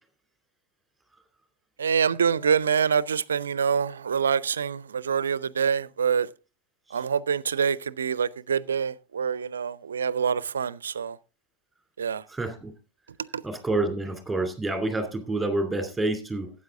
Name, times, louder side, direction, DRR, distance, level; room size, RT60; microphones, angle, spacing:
voice 1, 1.8-6.3 6.9-11.2 12.0-12.2 13.2-13.4, right 7 dB, 70° right, 0.4 m, -26 dB
voice 2, 12.3-12.7 13.4-16.5, right 2 dB, 5° right, 2.7 m, -28 dB
12.5 x 8.6 x 3.6 m
figure-of-eight pair, 90°, 0 cm